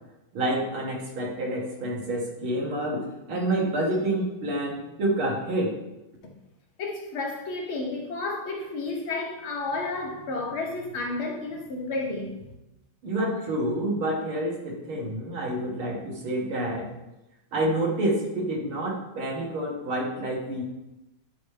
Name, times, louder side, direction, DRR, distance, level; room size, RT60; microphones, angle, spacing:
voice 1, 0.3-3.0 3.3-5.7 13.0-16.9 17.5-20.6, right 1 dB, 80° right, 2.9 m, -28 dB
voice 2, 6.8-12.5, left 3 dB, 80° left, 2.1 m, -31 dB
11.0 x 5.3 x 3.4 m
omnidirectional pair, 2.3 m